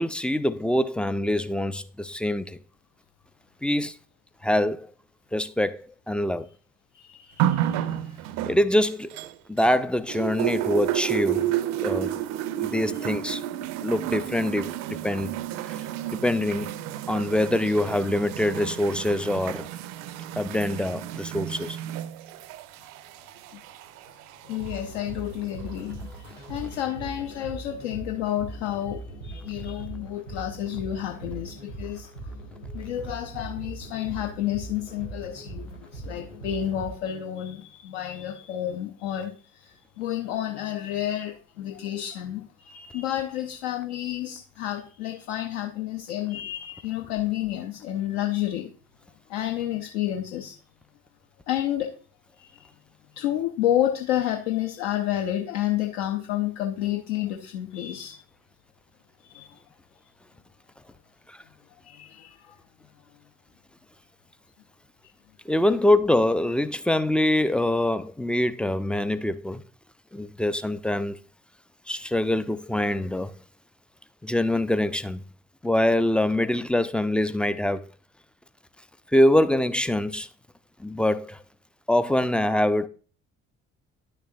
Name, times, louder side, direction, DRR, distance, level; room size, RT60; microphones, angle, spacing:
voice 1, 0.0-2.6 3.6-4.0 4.4-4.9 5.3-6.5 8.5-9.2 9.5-11.4 11.8-12.2 12.6-13.4 13.8-15.3 15.7-15.8 16.1-16.7 17.1-19.7 20.4-21.8 61.3-61.4 65.5-69.6 70.1-71.2 71.9-73.3 74.2-75.2 75.6-77.9 79.1-80.3 80.8-81.4 81.9-82.9, left 1 dB, 5° left, 0.3 m, -24 dB
voice 2, 6.9-8.2 23.5-23.6 24.0-24.2 24.4-32.3 32.7-48.7 49.3-50.6 51.5-52.0 52.4-52.7 53.2-58.2 59.2-59.6 61.8-62.6, left 12 dB, 65° left, 0.8 m, -30 dB
sound 1, 7.4-9.8 10.1-24.8 25.7-25.8, right 12 dB, 50° right, 0.5 m, -31 dB
sound 2, 24.5-36.9, right 2 dB, 90° left, 1.1 m, -40 dB
10.5 x 6.6 x 2.6 m
figure-of-eight pair, 50°, 36 cm